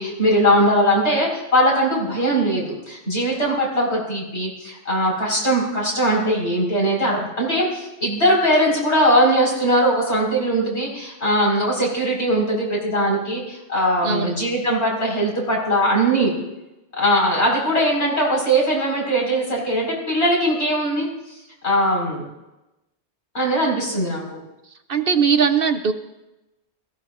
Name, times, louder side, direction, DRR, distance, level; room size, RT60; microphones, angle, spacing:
voice 1, 0.0-16.4 16.9-21.1 21.6-22.2 23.3-24.4, equal, 70° left, -3 dB, 5.4 m, -20 dB
voice 2, 24.9-25.9, right 6 dB, 55° right, 8 dB, 0.9 m, -19 dB
21.5 x 15.0 x 2.6 m, 0.98 s
omnidirectional pair, 1.2 m